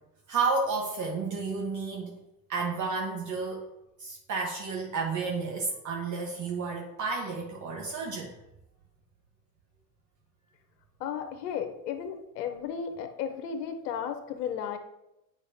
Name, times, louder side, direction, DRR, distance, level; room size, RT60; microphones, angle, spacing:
voice 1, 0.3-2.2 2.5-3.7 4.0-8.3, right 4 dB, 35° right, -1 dB, 1.3 m, -31 dB
voice 2, 11.0-14.8, left 8 dB, 70° left, 7 dB, 1.1 m, -34 dB
8.5 x 5.2 x 2.8 m, 0.89 s
hypercardioid pair, 80°, 48 cm